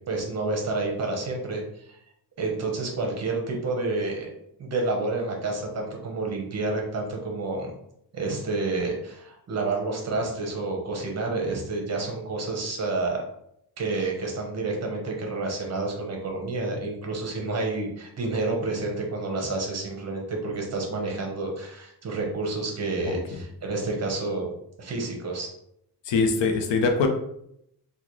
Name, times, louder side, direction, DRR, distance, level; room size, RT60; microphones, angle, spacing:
voice 1, 0.1-1.6 1.9-2.0 2.4-4.3 4.6-7.7 8.1-13.2 13.8-24.5 24.8-25.5, right 3 dB, 40° right, 1 dB, 0.7 m, -29 dB
voice 2, 23.0-23.4 26.1-27.1, left 4 dB, 90° left, 4 dB, 0.6 m, -23 dB
3.8 x 2.3 x 3.0 m, 0.74 s
wide cardioid pair, 175°, 42 cm